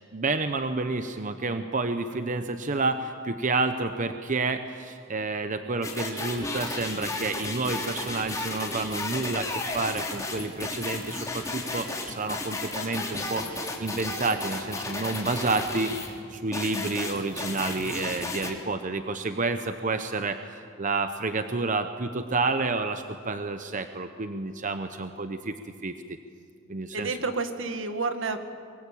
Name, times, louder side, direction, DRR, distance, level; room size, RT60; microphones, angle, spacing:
voice 1, 0.1-20.4 20.8-25.5 25.8-25.9 26.7-27.2, right 3 dB, 40° right, 8 dB, 0.9 m, -29 dB
sound 1, 5.8-16.1 16.5-18.5, left 2 dB, 15° left, 3.4 m, -33 dB
voice 2, 26.9-28.4, right 4 dB, 75° right, 7 dB, 2.0 m, -29 dB
23.5 x 23.5 x 8.5 m, 2.2 s
head